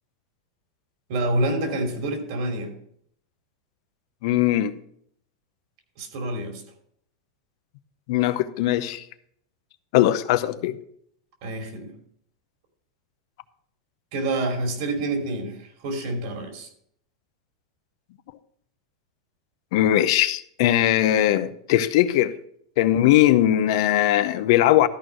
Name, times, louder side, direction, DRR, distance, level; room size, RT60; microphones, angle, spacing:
voice 1, 1.1-2.7 6.0-6.6 11.4-11.9 14.1-16.7, right 1 dB, 60° right, 2.9 m, -27 dB
voice 2, 4.2-4.8 8.1-9.0 9.9-10.8 19.7-22.3 22.8-24.9, left 13 dB, 60° left, 0.7 m, -20 dB
13.0 x 4.6 x 6.2 m
supercardioid pair, 125°, 3 cm